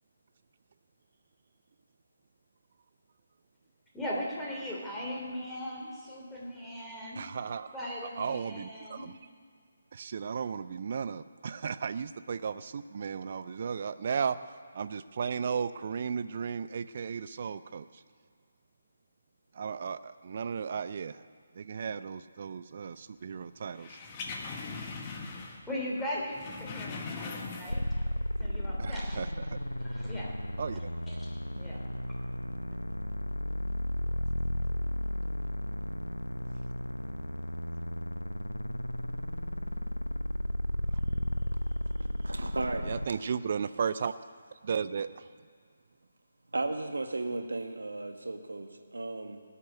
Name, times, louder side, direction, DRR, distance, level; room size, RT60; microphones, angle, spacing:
voice 1, 3.9-7.2 7.7-9.0 25.7-29.2 29.8-30.3 31.1-31.8, left 1 dB, 5° left, -4 dB, 3.0 m, -39 dB
voice 2, 7.2-7.8 8.2-9.2 9.9-14.4 14.7-18.0 19.5-21.2 21.5-24.0 24.8-25.0 28.8-29.6 30.6-30.9 42.8-44.1 44.6-45.3, right 6 dB, 40° right, 13 dB, 0.5 m, -35 dB
sound 1, 23.8-25.7 26.0-28.0 28.3-28.4, left 4 dB, 25° left, 1.5 m, -40 dB
sound 2, 27.7-43.0, left 1 dB, 85° left, 0.8 m, -34 dB
voice 3, 42.3-42.9 46.5-49.4, right 2 dB, 65° right, 6 dB, 1.6 m, -35 dB
18.0 x 8.4 x 9.6 m, 2.1 s
figure-of-eight pair, 145°, 0 cm